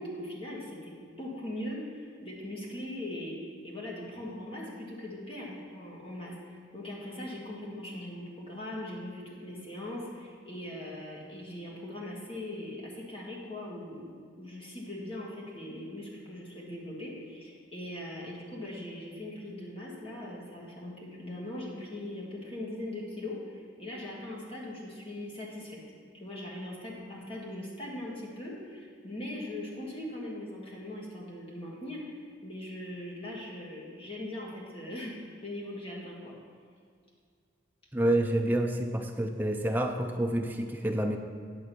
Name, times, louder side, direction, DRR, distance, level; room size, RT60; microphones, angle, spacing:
voice 1, 0.0-25.8 26.2-36.3, left 1 dB, 30° left, -4 dB, 1.5 m, -40 dB
voice 2, 37.9-41.2, right 1 dB, 10° right, 4 dB, 0.4 m, -28 dB
8.9 x 3.8 x 6.7 m, 2.1 s
head